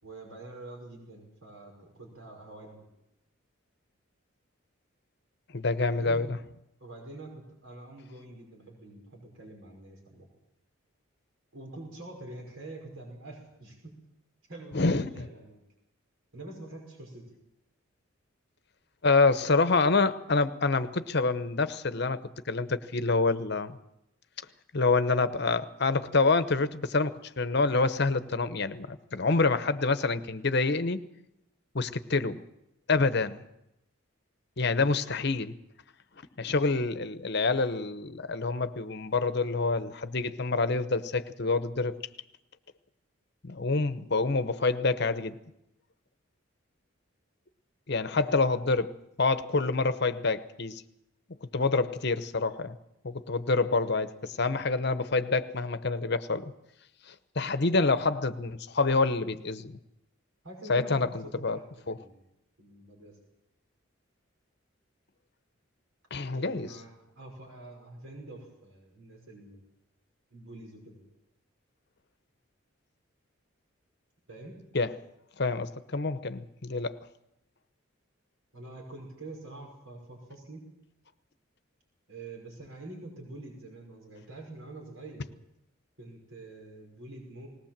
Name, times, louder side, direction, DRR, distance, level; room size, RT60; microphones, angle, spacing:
voice 1, 0.0-2.9 5.7-6.3 6.8-10.3 11.5-13.9 14.5-15.6 16.3-17.3 33.2-33.4 48.1-48.5 60.4-61.6 61.9-62.3 62.6-63.2 66.3-69.6 70.3-71.0 74.3-74.6 78.5-80.7 82.1-85.3 86.0-87.5, right 2 dB, 80° right, 1 dB, 5.5 m, -46 dB
voice 2, 5.5-6.4 14.7-15.1 19.0-22.2 22.5-23.8 24.7-31.0 31.7-32.4 32.9-33.4 34.6-35.5 36.4-42.0 43.4-45.4 47.9-48.9 49.2-50.8 51.5-52.8 53.0-56.5 57.1-59.7 60.7-61.6 61.9-62.0 66.1-66.8 74.7-74.9 75.4-77.0, left 3 dB, 55° left, 12 dB, 0.9 m, -27 dB
19.5 x 18.0 x 7.4 m, 0.84 s
head